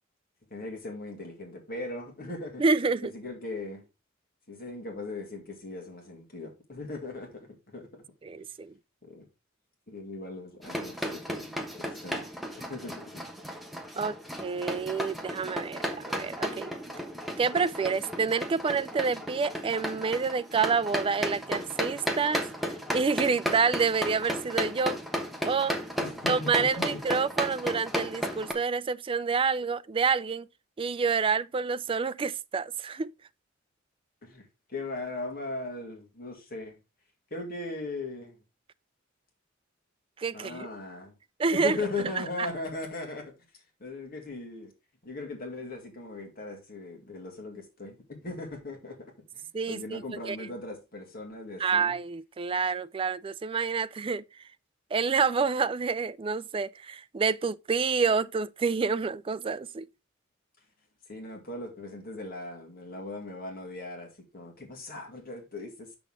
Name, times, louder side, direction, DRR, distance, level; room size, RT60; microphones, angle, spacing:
voice 1, 0.5-2.6 3.0-3.8 4.5-7.9 9.0-9.3 9.9-11.5 11.8-12.3 12.7-13.3 13.7-14.0 26.0-27.0 34.2-36.8 37.3-38.4 40.3-41.1 41.5-43.3 43.8-44.7 45.0-52.0 61.1-65.9, left 2 dB, 50° left, 2.3 m, -39 dB
voice 2, 2.6-3.1 8.2-8.7 14.0-16.7 17.4-22.5 22.9-25.0 25.5-25.7 26.3-30.5 30.8-33.1 40.2-40.6 41.4-41.8 42.4-42.5 49.5-50.4 51.6-54.2 54.9-59.9, right 5 dB, 25° right, 0.3 m, -28 dB
sound 1, 10.6-28.5, equal, ahead, 1.1 m, -34 dB
6.8 x 6.3 x 3.6 m
head